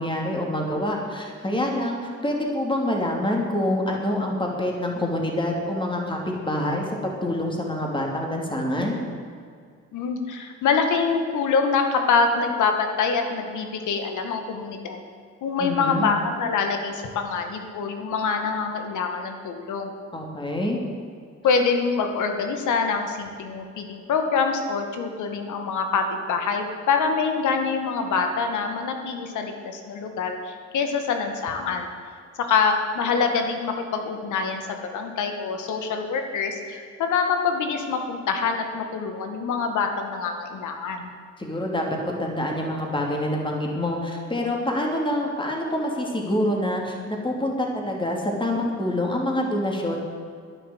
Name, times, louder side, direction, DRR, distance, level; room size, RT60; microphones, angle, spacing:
voice 1, 0.0-6.2 6.4-9.0 15.6-16.1 20.1-20.8 41.4-50.0, left 1 dB, 15° left, 0 dB, 3.2 m, -26 dB
voice 2, 9.9-15.0 15.4-19.9 21.4-31.9 32.4-41.1, left 5 dB, 75° left, 5 dB, 2.0 m, -25 dB
11.5 x 10.5 x 8.2 m, 2.2 s
cardioid pair, 90°, 30 cm